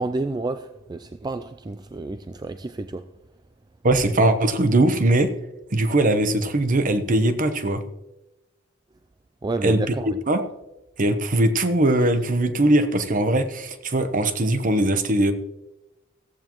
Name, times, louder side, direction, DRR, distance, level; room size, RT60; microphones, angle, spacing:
voice 1, 0.0-3.1 9.4-10.2, right 2 dB, 20° right, 0.3 m, -30 dB
voice 2, 3.8-5.3 5.7-7.8 9.6-9.8 10.3-10.4 11.0-15.3, right 1 dB, 40° right, 0.9 m, -20 dB
14.5 x 14.5 x 3.0 m
head